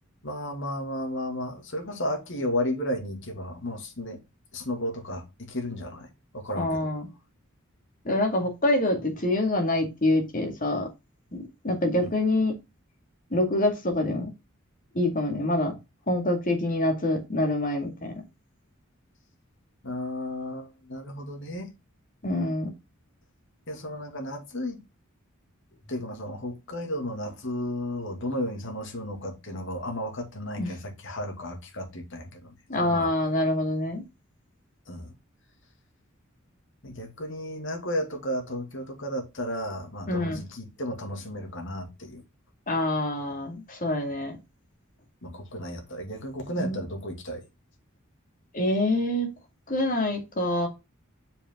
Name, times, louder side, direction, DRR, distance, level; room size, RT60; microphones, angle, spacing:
voice 1, 0.2-4.2 4.5-6.1 6.3-6.9 11.9-12.1 19.8-21.7 23.7-24.8 25.9-33.1 34.9-35.1 36.8-42.2 45.2-47.4, left 1 dB, 60° left, 2.4 m, -33 dB
voice 2, 6.6-7.1 8.0-10.9 11.3-12.6 13.3-14.3 14.9-15.8 16.1-18.1 22.2-22.7 30.6-30.8 32.7-34.0 40.1-40.4 42.7-44.4 46.6-46.8 48.5-49.3 49.7-50.7, left 1 dB, 40° left, 2.3 m, -26 dB
6.5 x 5.3 x 3.8 m
head